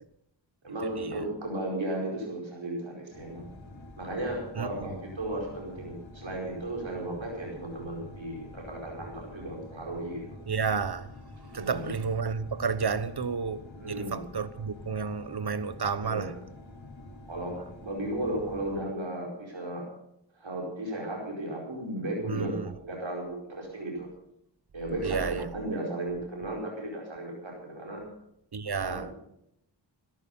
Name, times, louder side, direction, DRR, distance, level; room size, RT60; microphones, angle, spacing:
voice 1, 0.6-3.4 4.0-10.4 11.5-11.9 13.7-14.2 16.0-16.4 17.3-19.9 20.4-24.1 24.7-28.0 28.8-29.1, right 1 dB, 85° right, 4.9 m, -35 dB
sound 1, 3.1-18.8, left 2 dB, 85° left, 3.6 m, -47 dB
voice 2, 10.5-11.1 11.5-13.6 13.9-16.3 22.3-22.7 25.0-25.5 28.5-29.1, right 5 dB, 55° right, 1.1 m, -31 dB
17.0 x 13.0 x 5.5 m
wide cardioid pair, 55°, 45 cm